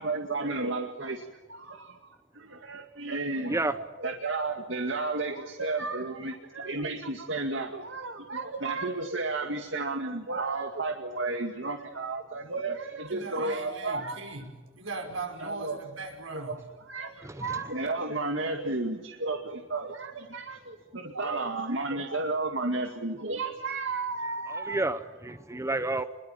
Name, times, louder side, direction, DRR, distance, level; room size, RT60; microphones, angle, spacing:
voice 1, 0.0-14.2 15.4-15.8 16.3-16.6 16.9-24.9, right 3 dB, 70° right, 4 dB, 2.2 m, -33 dB
voice 2, 13.0-16.6, right 3 dB, 85° right, 4 dB, 5.7 m, -39 dB
voice 3, 24.5-26.0, right 2 dB, 15° right, 11 dB, 0.8 m, -30 dB
28.0 x 22.0 x 9.0 m, 1.2 s
head